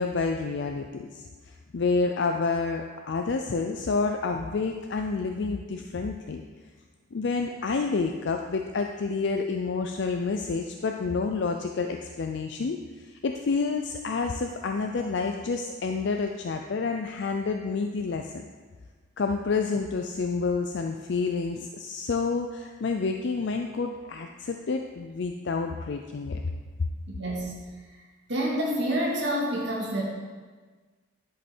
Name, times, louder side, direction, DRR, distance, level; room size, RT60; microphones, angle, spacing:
voice 1, 0.0-6.4 7.1-18.4 19.2-26.4 26.8-26.9, left 4 dB, 60° left, 4 dB, 0.4 m, -29 dB
voice 2, 27.2-27.6 28.3-30.0, right 1 dB, 60° right, -3 dB, 2.0 m, -28 dB
10.5 x 5.3 x 4.5 m, 1.4 s
head